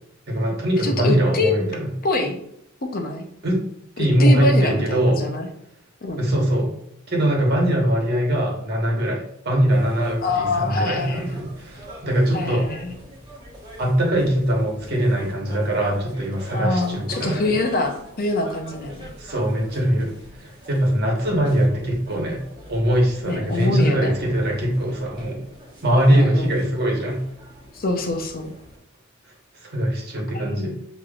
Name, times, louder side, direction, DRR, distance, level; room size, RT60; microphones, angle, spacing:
voice 1, 0.3-1.9 3.4-3.6 4.0-5.2 6.2-6.7 7.1-12.7 13.8-17.5 19.2-20.1 20.4-22.4 22.7-25.4 25.8-27.2 29.6-30.7, right 1 dB, 50° right, -1 dB, 1.3 m, -21 dB
voice 2, 0.8-1.5 2.0-2.4 2.8-3.3 4.0-5.5 6.0-6.2 10.2-11.2 12.3-12.9 16.5-19.1 23.2-24.1 26.1-26.7 27.7-28.5 30.3-30.9, left 2 dB, 45° left, 4 dB, 0.7 m, -25 dB
sound 1, 9.7-28.8, equal, 20° right, 1.2 m, -43 dB
6.5 x 3.0 x 2.4 m, 0.75 s
head